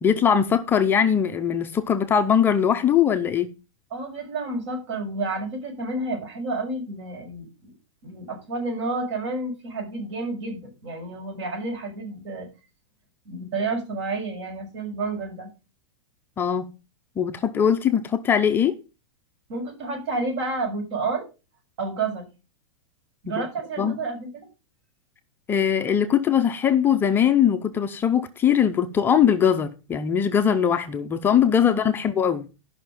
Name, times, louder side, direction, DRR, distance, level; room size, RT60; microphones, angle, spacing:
voice 1, 0.0-3.5 16.4-16.7 17.2-18.8 23.8-24.0 25.5-32.5, left 8 dB, 10° left, 0.6 m, -21 dB
voice 2, 3.9-7.7 8.0-12.5 13.2-15.5 19.5-21.3 21.8-22.3 23.2-24.5 31.6-32.0, right 3 dB, 55° right, 6.4 m, -30 dB
12.5 x 5.8 x 5.3 m
supercardioid pair, 165°, 17 cm